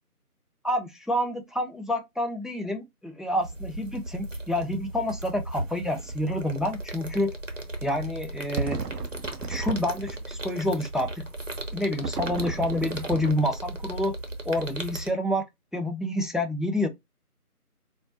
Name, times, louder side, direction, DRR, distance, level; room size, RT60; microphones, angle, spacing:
voice 1, 0.6-7.3 7.8-8.8 9.5-11.3 11.7-14.1 14.4-15.5 15.7-16.9, left 1 dB, ahead, 0.4 m, -28 dB
sound 1, 3.4-15.1, right 2 dB, 55° right, 0.8 m, -37 dB
sound 2, 6.0-6.3 6.6-6.7 8.6-10.5 12.0-13.8, right 4 dB, 90° right, 0.6 m, -34 dB
4.3 x 2.0 x 2.6 m
figure-of-eight pair, 170°, 46 cm